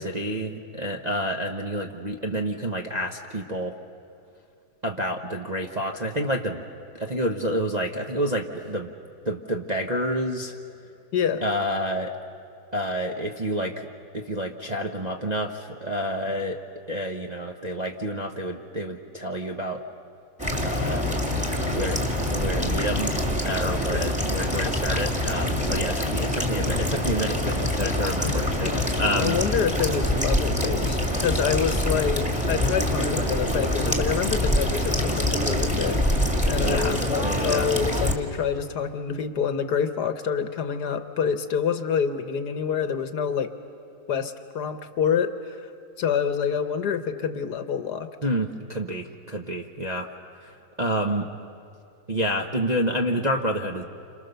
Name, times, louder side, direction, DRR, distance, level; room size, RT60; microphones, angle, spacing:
voice 1, 0.0-3.8 4.8-6.6 6.9-8.9 9.2-10.5 11.4-12.1 12.7-13.9 14.1-16.6 16.9-19.8 20.6-21.1 21.7-23.2 23.4-29.4 36.6-37.7 48.2-50.1 50.4-50.5 50.8-51.3 52.1-53.8, equal, 30° right, 1 dB, 0.8 m, -29 dB
voice 2, 11.1-11.5 23.9-24.1 28.6-28.9 29.2-36.0 36.5-43.5 44.1-45.7 46.0-48.1, left 7 dB, 60° left, 9 dB, 1.5 m, -27 dB
sound 1, 20.4-38.1, left 1 dB, 5° right, 1.8 m, -25 dB
29.5 x 27.0 x 6.8 m, 2.4 s
omnidirectional pair, 2.0 m